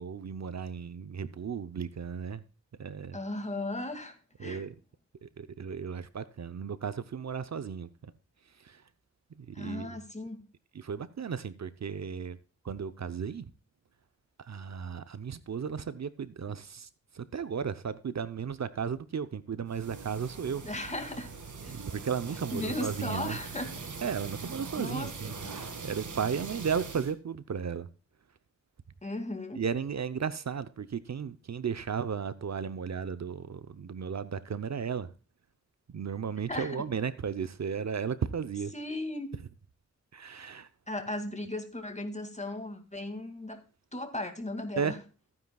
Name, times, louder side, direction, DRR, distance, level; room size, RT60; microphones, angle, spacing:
voice 1, 0.0-2.4 2.8-3.2 4.4-4.7 5.2-8.1 8.5-8.8 9.4-10.0 10.7-12.4 12.6-13.5 14.4-20.6 21.7-23.4 24.0-27.9 29.6-35.1 35.9-38.7 40.1-40.7 44.8-45.0, right 6 dB, 65° right, 0.7 m, -35 dB
voice 2, 3.1-4.6 9.5-10.4 20.6-21.4 21.6-21.8 22.5-23.9 24.8-25.1 25.4-25.6 29.0-29.6 36.5-36.8 38.7-39.4 40.9-43.6 43.9-45.0, left 1 dB, 25° left, 2.2 m, -36 dB
sound 1, 19.7-27.1, right 4 dB, 85° right, 1.8 m, -42 dB
14.5 x 9.6 x 2.3 m
wide cardioid pair, 75°, 30 cm